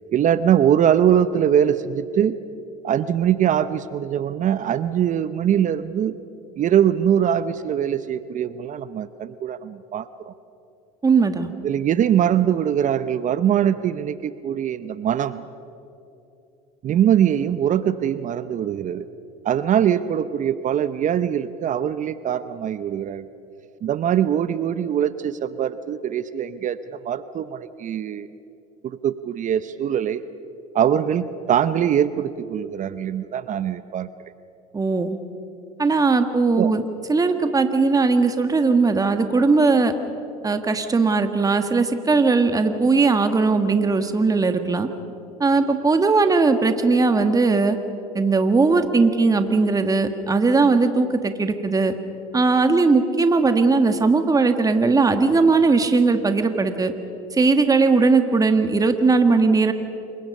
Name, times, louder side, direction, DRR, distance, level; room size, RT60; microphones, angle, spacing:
voice 1, 0.1-2.4 2.8-6.1 6.6-10.3 11.6-15.4 16.8-19.1 19.4-23.3 23.8-28.3 28.8-30.2 30.7-34.1 36.6-36.7, right 9 dB, 40° right, 14 dB, 0.8 m, -22 dB
voice 2, 11.0-11.5 34.7-35.2 35.8-36.8 37.1-39.9 40.4-44.9 45.4-47.8 48.1-51.9 52.3-56.9 57.3-59.7, right 4 dB, 20° right, 8 dB, 1.6 m, -19 dB
27.5 x 23.0 x 5.5 m, 2.7 s
hypercardioid pair, 90°, 19 cm